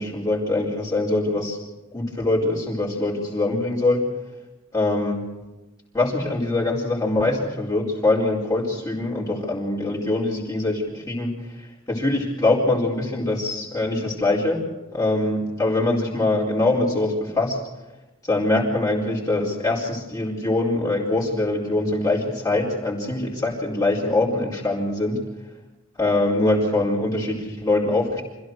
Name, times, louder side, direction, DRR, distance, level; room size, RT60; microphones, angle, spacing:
voice 1, 0.0-1.6 1.9-4.1 4.7-5.2 5.9-14.6 14.9-17.6 18.2-25.2 26.0-28.2, left 2 dB, 15° left, -4 dB, 4.5 m, -23 dB
26.0 x 15.5 x 6.4 m, 1.0 s
head